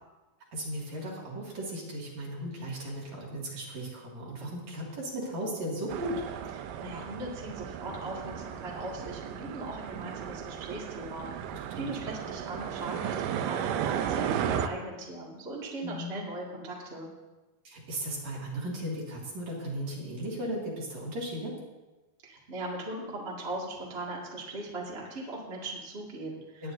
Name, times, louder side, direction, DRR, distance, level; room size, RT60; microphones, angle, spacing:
voice 1, 0.5-6.2 11.7-11.8 15.8-16.2 17.6-21.5 26.6-26.7, right 1 dB, 55° right, -4 dB, 3.3 m, -36 dB
sound 1, 5.9-14.7, right 9 dB, 80° right, 2.1 m, -35 dB
voice 2, 6.5-11.3 11.7-17.1 22.2-26.7, right 2 dB, 25° right, -4 dB, 1.5 m, -39 dB
19.0 x 9.6 x 2.7 m, 1.1 s
omnidirectional pair, 4.2 m